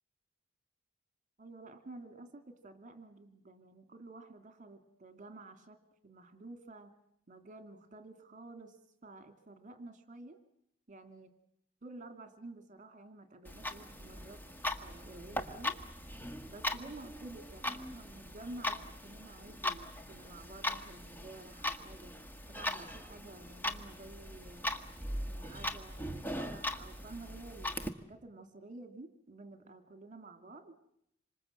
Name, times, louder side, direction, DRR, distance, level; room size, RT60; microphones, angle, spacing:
voice 1, 1.4-7.0 7.3-8.8 9.0-10.4 10.9-11.3 11.8-14.4 14.8-15.7 16.5-22.2 22.5-24.8 25.3-30.8, right 2 dB, 40° right, 7 dB, 2.4 m, -51 dB
Clock, 13.5-27.9, left 1 dB, 10° left, 1.5 m, -40 dB
27.0 x 26.0 x 7.7 m, 0.73 s
head